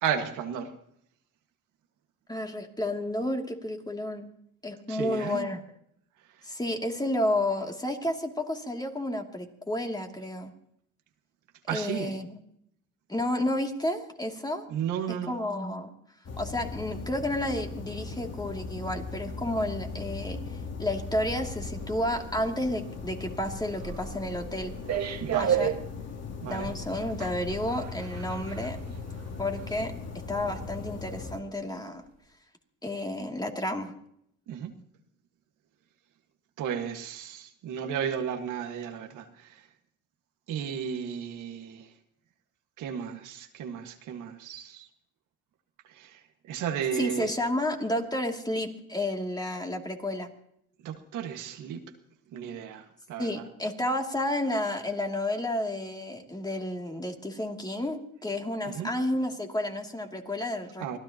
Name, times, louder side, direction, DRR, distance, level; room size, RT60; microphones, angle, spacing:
voice 1, 0.0-0.7 4.9-5.5 11.7-12.1 14.7-15.3 25.2-25.7 26.4-26.7 34.5-34.7 36.6-39.6 40.5-41.9 42.8-44.9 45.9-46.2 46.5-47.3 50.8-51.8 52.3-53.4 58.7-58.9 60.8-61.0, right 8 dB, 90° right, 4 dB, 1.8 m, -34 dB
voice 2, 2.3-4.3 4.6-5.6 6.4-10.5 11.7-12.4 13.1-14.6 15.1-15.9 16.4-24.7 25.4-25.7 26.5-28.8 29.4-29.9 30.3-32.0 32.8-33.9 46.9-50.3 53.2-61.0, left 1 dB, 15° left, 2 dB, 2.6 m, -31 dB
sound 1, 16.2-31.4, left 4 dB, 60° left, 3.1 m, -39 dB
sound 2, 21.1-30.2 30.5-30.7, right 9 dB, 60° right, 1.7 m, -35 dB
25.0 x 16.5 x 2.9 m, 0.73 s
cardioid pair, 90°, 30 cm